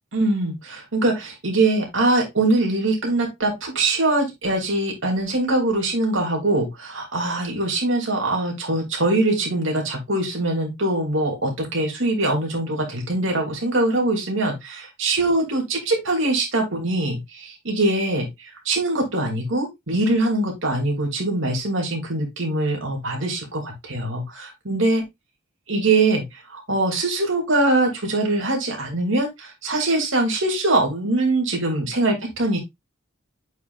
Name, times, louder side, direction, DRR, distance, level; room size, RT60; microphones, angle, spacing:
voice 1, 0.1-18.3 18.6-25.0 25.7-26.2 26.5-32.6, right 2 dB, 65° right, 0 dB, 2.9 m, -22 dB
8.1 x 5.1 x 2.5 m, 0.19 s
head